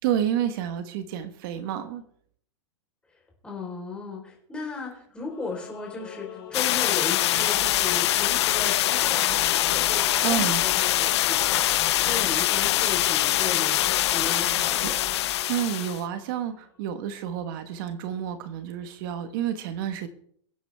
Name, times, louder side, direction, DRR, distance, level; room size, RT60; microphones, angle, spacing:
voice 1, 0.0-2.0 10.2-10.7 14.3-14.9 15.5-20.1, right 10 dB, 45° right, 9 dB, 1.4 m, -30 dB
voice 2, 3.4-11.7 12.0-14.9, left 4 dB, 5° left, -2 dB, 4.3 m, -36 dB
Singing / Musical instrument, 5.3-16.5, left 9 dB, 30° left, 4.3 m, -42 dB
sound 1, 6.5-16.0, left 14 dB, 60° left, 0.4 m, -23 dB
sound 2, 7.4-15.4, right 5 dB, 10° right, 1.6 m, -47 dB
24.0 x 9.0 x 3.6 m, 0.64 s
hypercardioid pair, 145°, 15 cm